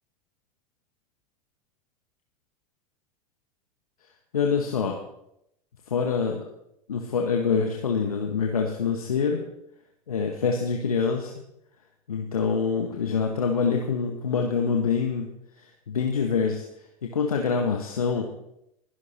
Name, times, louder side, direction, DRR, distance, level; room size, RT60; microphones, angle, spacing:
voice 1, 4.3-5.0 5.9-6.4 6.9-9.4 10.1-11.3 12.1-15.3 15.6-16.6 17.0-18.3, left 5 dB, 75° left, 2 dB, 1.4 m, -25 dB
21.5 x 11.5 x 2.9 m, 0.80 s
figure-of-eight pair, 80°, 19 cm